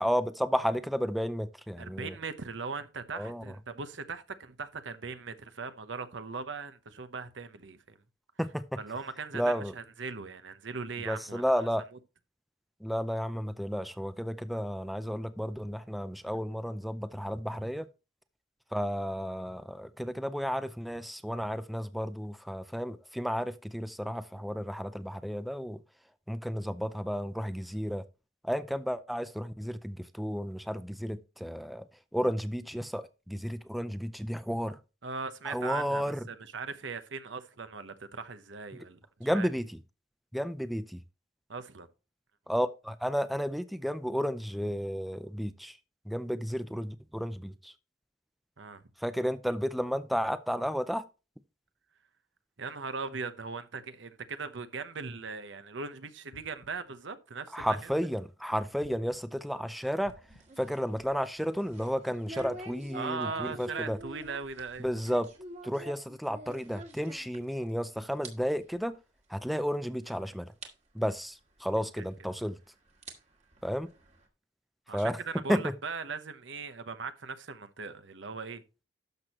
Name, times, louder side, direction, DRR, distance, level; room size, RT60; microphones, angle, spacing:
voice 1, 0.0-2.2 3.1-3.6 8.4-8.8 9.3-9.7 11.1-11.9 12.8-17.9 18.7-25.8 26.3-28.0 28.4-31.9 32.1-34.8 35.4-36.3 39.2-39.8 40.3-41.0 42.5-45.8 46.1-47.7 49.0-51.0 57.5-60.2 60.6-64.0 64.8-65.3 65.6-69.0 69.3-70.5 70.9-72.6 73.6-73.9 74.9-75.2 75.5-75.7, equal, ahead, 0.4 m, -32 dB
voice 2, 1.8-8.0 8.8-11.4 35.0-39.0 39.3-39.5 41.5-41.9 48.6-48.8 52.6-57.9 62.9-64.9 72.0-72.1 74.9-78.6, right 4 dB, 75° right, 0.9 m, -39 dB
sound 1, 56.3-57.0 57.6-58.2 58.8-59.5 60.0-60.7, left 1 dB, 80° left, 1.2 m, -56 dB
sound 2, 59.8-67.8 68.0-68.3 68.6-68.8 69.5-69.6 70.1-70.2 70.6-70.7 72.1-72.2 72.8-74.3, right 1 dB, 40° right, 1.7 m, -47 dB
12.0 x 6.2 x 3.0 m
head